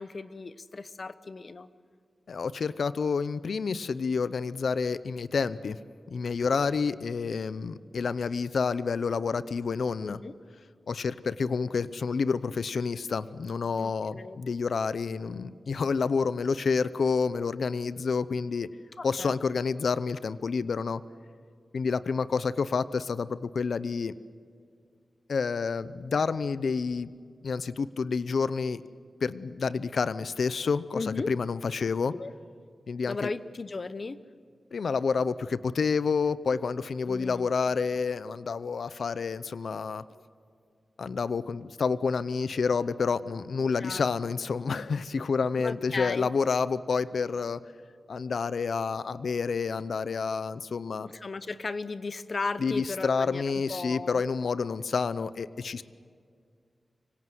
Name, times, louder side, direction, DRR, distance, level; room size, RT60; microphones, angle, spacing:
voice 1, 0.0-1.7 10.0-10.4 13.8-14.4 19.0-19.4 30.9-31.3 32.1-32.3 33.1-34.2 37.1-37.5 43.8-44.1 45.6-46.3 51.0-54.2, left 3 dB, 45° left, 14 dB, 0.9 m, -36 dB
voice 2, 2.3-5.8 6.1-10.2 10.9-18.7 19.0-21.0 21.7-24.1 25.3-27.1 27.4-28.8 29.2-32.1 32.9-33.3 34.7-40.0 41.0-47.6 48.1-51.1 52.6-55.8, left 5 dB, 75° left, 15 dB, 0.7 m, -29 dB
25.5 x 25.0 x 7.9 m, 2.1 s
wide cardioid pair, 135°, 0 cm